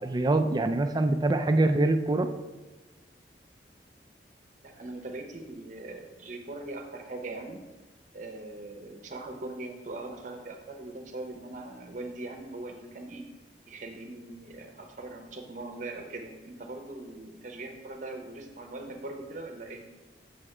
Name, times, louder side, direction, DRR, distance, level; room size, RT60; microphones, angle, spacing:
voice 1, 0.0-2.3, right 2 dB, 25° right, 7 dB, 0.4 m, -24 dB
voice 2, 4.6-7.6 8.1-13.2 13.7-19.9, right 2 dB, 45° right, 4 dB, 0.7 m, -41 dB
7.1 x 3.3 x 4.8 m, 1.2 s
head